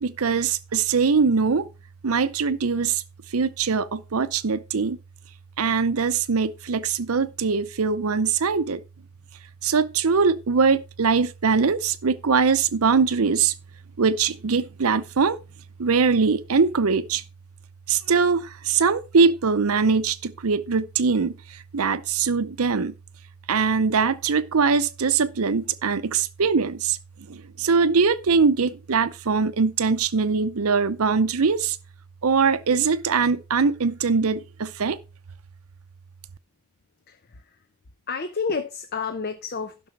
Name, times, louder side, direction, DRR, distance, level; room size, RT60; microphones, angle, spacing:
voice 1, 0.0-1.7 2.0-3.0 3.3-5.0 5.6-8.8 9.6-13.5 14.0-15.4 15.8-17.2 17.9-21.3 21.7-22.9 23.5-27.0 27.3-31.8 32.2-35.0, right 5 dB, 75° right, 0.7 m, -22 dB
voice 2, 37.1-37.6 38.1-39.9, left 5 dB, 45° left, 0.7 m, -30 dB
11.5 x 6.1 x 4.6 m
head